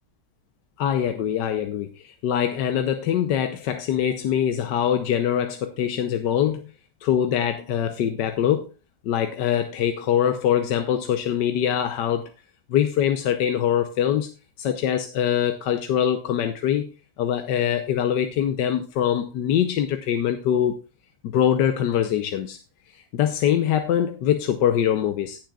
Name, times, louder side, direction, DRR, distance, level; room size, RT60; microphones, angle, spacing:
voice 1, 0.8-6.7 7.0-8.7 9.0-12.3 12.7-14.3 14.6-16.9 17.2-20.8 21.2-22.6 22.9-25.4, left 9 dB, 90° left, 1.4 m, -23 dB
18.0 x 7.6 x 2.4 m
omnidirectional pair, 1.8 m